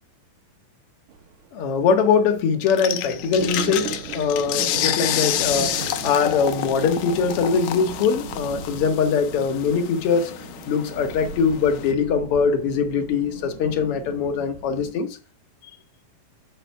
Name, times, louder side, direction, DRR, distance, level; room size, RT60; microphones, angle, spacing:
sound 1, 1.1-14.9, right 7 dB, 75° right, 2.5 m, -37 dB
voice 1, 1.5-15.2, left 6 dB, 60° left, 1.7 m, -22 dB
sound 2, 2.7-11.9, left 11 dB, 85° left, 1.4 m, -29 dB
7.0 x 5.6 x 4.5 m
omnidirectional pair, 3.5 m